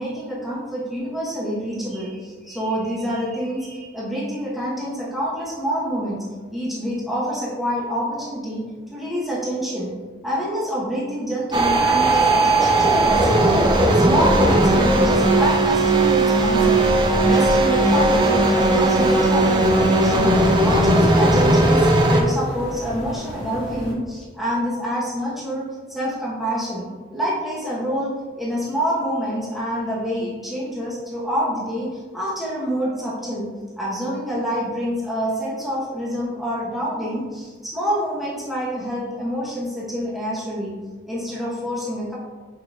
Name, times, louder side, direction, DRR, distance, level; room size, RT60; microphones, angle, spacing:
voice 1, 0.0-6.2 6.5-8.6 8.9-9.9 10.2-13.5 13.9-16.8 17.3-33.5 33.8-40.7 41.1-42.1, equal, ahead, -7 dB, 0.9 m, -27 dB
sound 1, 11.5-22.2, right 2 dB, 25° right, 0.5 m, -17 dB
sound 2, 18.9-23.9, equal, 35° left, 1.2 m, -32 dB
5.9 x 3.8 x 2.3 m, 1.5 s
head